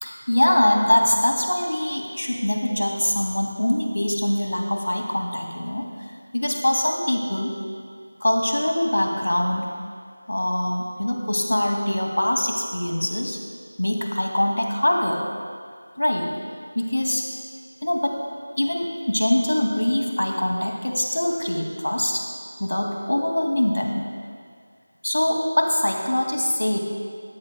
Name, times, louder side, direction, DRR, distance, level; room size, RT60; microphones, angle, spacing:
voice 1, 0.0-5.9 6.3-7.5 8.2-9.7 10.3-13.4 13.8-15.2 16.0-16.3 16.7-17.3 17.8-18.2 18.6-22.3 22.6-24.1 25.0-26.8, left 1 dB, 75° left, 1 dB, 2.3 m, -23 dB
18.5 x 14.0 x 2.3 m, 2.1 s
figure-of-eight pair, 175°, 0 cm